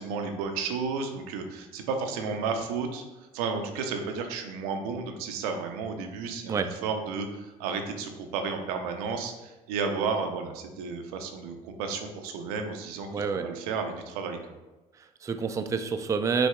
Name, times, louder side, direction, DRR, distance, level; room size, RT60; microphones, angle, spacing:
voice 1, 0.0-14.4, right 5 dB, 75° right, 5 dB, 0.5 m, -32 dB
voice 2, 13.1-13.5 15.0-16.5, right 5 dB, 15° right, 7 dB, 0.3 m, -28 dB
5.8 x 2.7 x 2.3 m, 1.1 s
hypercardioid pair, 60°, 19 cm